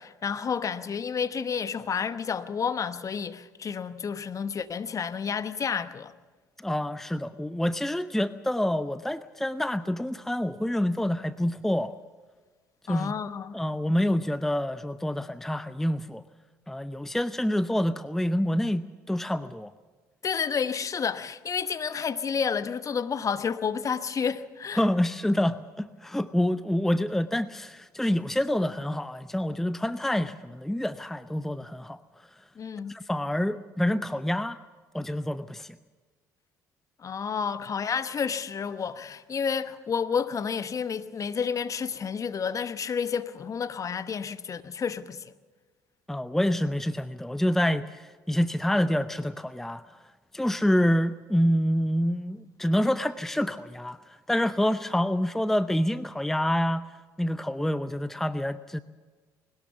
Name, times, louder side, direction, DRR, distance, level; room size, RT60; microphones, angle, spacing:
voice 1, 0.0-6.1 12.9-13.5 20.2-24.8 32.6-32.9 37.0-45.3, left 6 dB, 35° left, 1.0 m, -30 dB
voice 2, 6.6-12.0 12.9-13.1 13.5-16.2 16.7-19.7 24.7-32.0 32.9-34.6 34.9-35.8 46.1-49.8 50.3-56.9 57.2-58.8, left 1 dB, 5° left, 0.6 m, -27 dB
20.5 x 18.5 x 7.0 m
hypercardioid pair, 55°, 9 cm